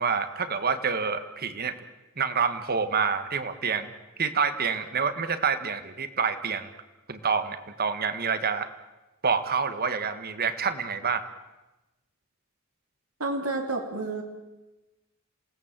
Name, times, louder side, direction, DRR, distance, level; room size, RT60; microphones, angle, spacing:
voice 1, 0.0-1.8 2.2-3.9 4.2-6.7 7.1-8.7 9.2-11.3, right 5 dB, 45° right, 10 dB, 1.6 m, -27 dB
voice 2, 13.2-14.2, right 2 dB, 80° right, 2 dB, 3.4 m, -30 dB
27.5 x 18.0 x 7.5 m, 1.1 s
head